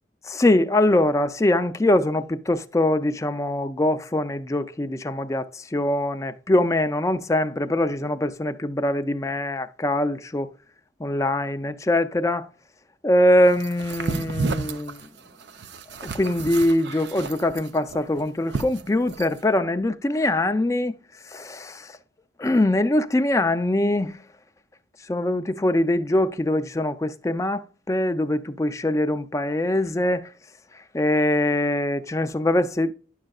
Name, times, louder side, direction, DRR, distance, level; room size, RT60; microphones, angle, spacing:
voice 1, 0.3-10.5 11.0-12.5 13.0-15.0 16.0-20.9 21.3-21.9 22.4-24.2 25.1-30.3 30.9-32.9, left 1 dB, 15° left, 0.4 m, -23 dB
sound 1, 13.6-19.4, right 4 dB, 65° right, 0.6 m, -32 dB
10.5 x 6.4 x 2.3 m
head